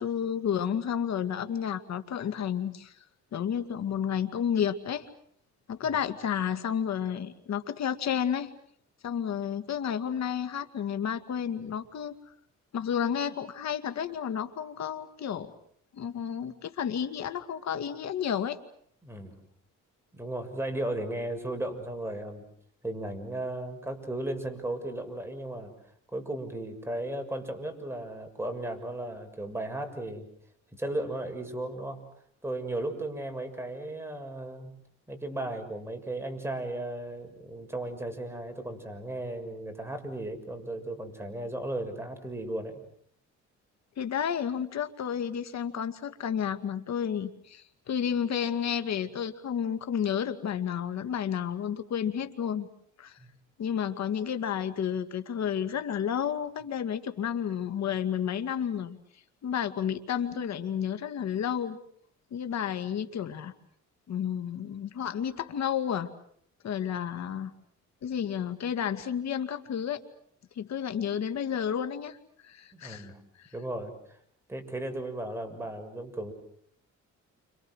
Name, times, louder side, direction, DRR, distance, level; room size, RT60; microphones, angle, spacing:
voice 1, 0.0-2.9 3.3-5.1 5.7-8.5 9.0-12.2 12.7-15.5 15.9-18.6 44.0-52.7 53.0-53.2 53.6-59.0 59.4-61.8 62.3-63.5 64.1-66.1 66.6-67.5 68.0-70.0 70.6-72.2 72.4-73.1 73.4-73.5, left 8 dB, 60° left, 9 dB, 2.3 m, -31 dB
voice 2, 19.0-19.4 20.1-22.4 22.8-25.7 26.1-30.3 30.7-32.1 32.4-34.8 35.1-42.8 53.2-53.3 72.7-73.2 73.5-74.2 74.5-76.3, right 1 dB, 10° right, 5 dB, 6.6 m, -35 dB
29.5 x 27.0 x 6.4 m, 0.65 s
cardioid pair, 90°, 30 cm